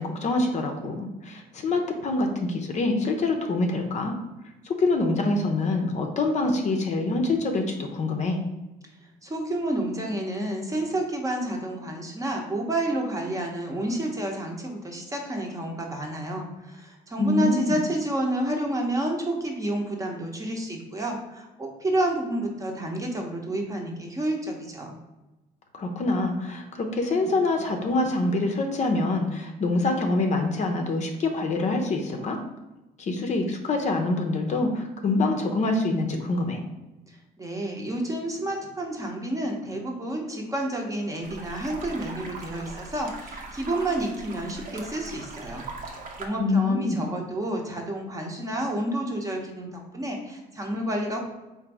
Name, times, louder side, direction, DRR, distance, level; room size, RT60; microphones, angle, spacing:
voice 1, 0.0-4.1 4.6-8.4 17.2-17.8 25.7-32.4 33.0-36.6 46.4-47.0, left 2 dB, 45° left, 3 dB, 0.6 m, -25 dB
voice 2, 9.2-25.0 37.1-45.7 46.2-51.2, right 1 dB, 20° right, 1 dB, 0.8 m, -30 dB
sound 1, 41.2-46.3, right 3 dB, 55° right, 0.8 m, -40 dB
3.8 x 2.6 x 4.6 m, 1.1 s
cardioid pair, 110°, 17 cm